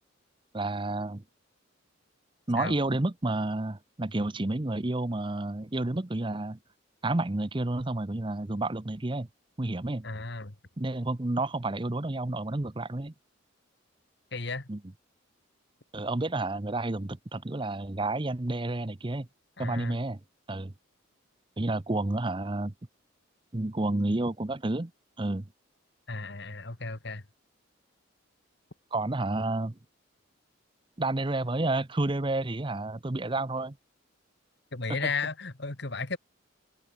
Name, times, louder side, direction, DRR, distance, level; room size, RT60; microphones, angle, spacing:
voice 1, 0.5-1.2 2.5-6.6 7.0-9.3 9.6-10.0 10.8-13.1 14.7-14.8 15.9-19.3 19.6-20.2 20.5-20.7 21.6-22.7 23.5-24.9 25.2-25.5 28.9-29.8 31.0-33.8, right 2 dB, 25° right, 0.7 m, -30 dB
voice 2, 10.0-10.6 14.3-14.7 19.6-20.0 26.1-27.2 34.7-36.2, left 4 dB, 55° left, 1.9 m, -34 dB
head